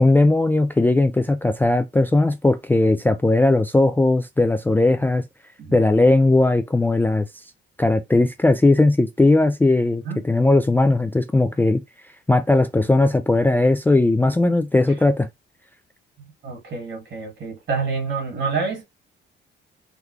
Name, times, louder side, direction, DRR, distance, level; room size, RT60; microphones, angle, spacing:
voice 1, 0.0-5.2 5.7-7.3 7.8-11.8 12.3-15.3, left 2 dB, 10° left, 0.3 m, -18 dB
voice 2, 16.4-18.8, right 4 dB, 65° right, 2.1 m, -27 dB
3.7 x 2.2 x 3.2 m
cardioid pair, 90°, 20 cm